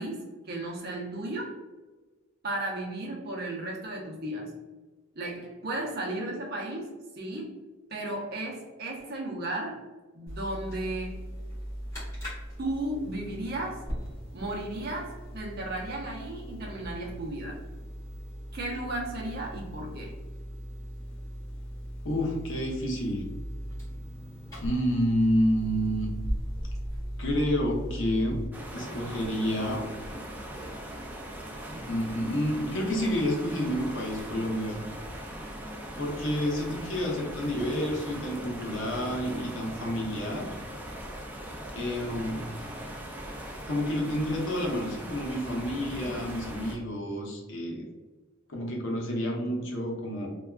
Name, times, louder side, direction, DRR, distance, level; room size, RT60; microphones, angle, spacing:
voice 1, 0.0-1.6 2.4-4.5 5.1-7.5 7.9-9.9 10.1-11.3 12.6-13.9 14.3-17.6 18.5-20.1 30.4-30.5 31.7-31.9, right 1 dB, 50° right, -1 dB, 0.6 m, -35 dB
sound 1, 10.3-28.5, equal, 15° left, 1.5 m, -38 dB
voice 2, 22.0-23.2 24.6-26.1 27.2-28.4 28.7-29.8 31.9-34.8 36.0-40.5 41.7-42.5 43.7-47.8 48.5-50.3, equal, 65° left, -1 dB, 0.7 m, -29 dB
sound 2, 28.5-46.8, right 1 dB, 10° right, 0.3 m, -40 dB
3.3 x 2.3 x 2.3 m, 1.2 s
head